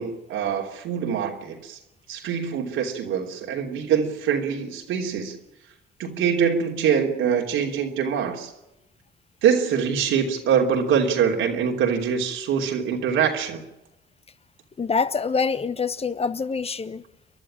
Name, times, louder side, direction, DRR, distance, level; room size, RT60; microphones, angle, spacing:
voice 1, 0.0-1.8 2.1-5.3 6.0-8.5 9.4-13.6, right 7 dB, 90° right, 3.2 m, -24 dB
voice 2, 14.8-17.0, left 5 dB, 30° left, 1.1 m, -25 dB
29.5 x 11.5 x 8.8 m
cardioid pair, 90°, 20 cm